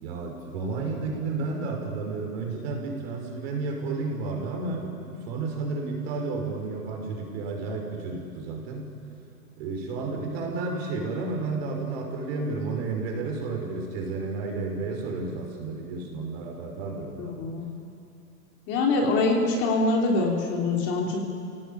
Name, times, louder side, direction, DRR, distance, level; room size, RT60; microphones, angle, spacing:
voice 1, 0.0-8.9 9.6-17.4, right 3 dB, 40° right, 1 dB, 5.5 m, -32 dB
voice 2, 17.2-17.8 18.7-21.2, left 3 dB, 30° left, 1 dB, 3.3 m, -24 dB
29.5 x 17.5 x 9.0 m, 2.5 s
hypercardioid pair, 155°, 47 cm